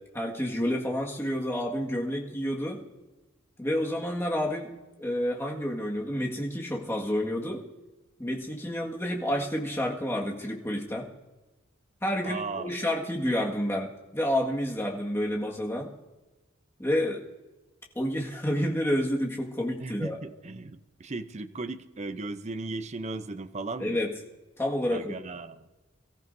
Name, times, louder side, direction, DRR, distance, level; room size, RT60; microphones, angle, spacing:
voice 1, 0.1-2.8 3.6-4.7 5.0-7.6 8.2-11.1 12.0-15.9 16.8-17.2 18.0-20.2 23.8-24.1 24.6-25.2, equal, 15° left, -1 dB, 1.8 m, -29 dB
voice 2, 12.2-12.7 19.8-24.0 24.9-25.7, right 3 dB, 35° right, 11 dB, 0.6 m, -36 dB
23.0 x 14.0 x 2.7 m, 1.1 s
head